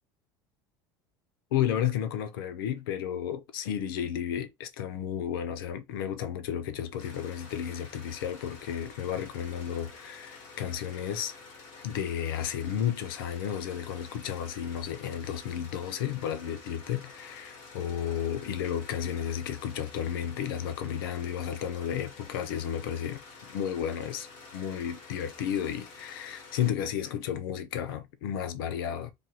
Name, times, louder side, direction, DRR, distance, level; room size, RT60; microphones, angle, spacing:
voice 1, 1.5-11.3 11.8-23.2 23.5-24.3 24.5-29.1, left 9 dB, 80° left, 0.7 m, -32 dB
sound 1, 7.0-26.7, left 4 dB, 60° left, 2.2 m, -49 dB
3.5 x 2.8 x 3.8 m
hypercardioid pair, 85°, 12 cm